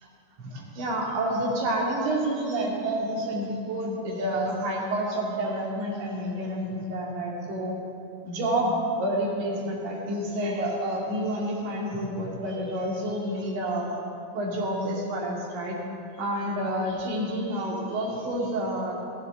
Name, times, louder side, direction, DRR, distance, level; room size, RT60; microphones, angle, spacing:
voice 1, 0.4-7.8 8.2-13.9 14.3-15.8 16.2-18.9, right 1 dB, 45° right, -2 dB, 2.8 m, -29 dB
16.0 x 11.5 x 3.9 m, 2.6 s
figure-of-eight pair, 90°, 0 cm